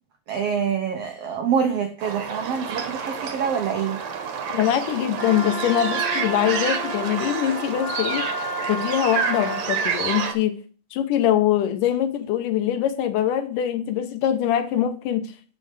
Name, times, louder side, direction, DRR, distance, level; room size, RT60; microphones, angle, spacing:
voice 1, 0.3-4.0, right 7 dB, 85° right, 1.4 m, -25 dB
sound 1, 2.0-10.3, right 6 dB, 60° right, 2.0 m, -29 dB
voice 2, 4.5-8.3 8.7-10.5 10.9-15.3, left 11 dB, 75° left, 2.1 m, -23 dB
Wind instrument woodwind instrument, 5.2-9.7, right 1 dB, 10° left, 2.9 m, -31 dB
11.0 x 4.8 x 4.7 m
omnidirectional pair, 4.0 m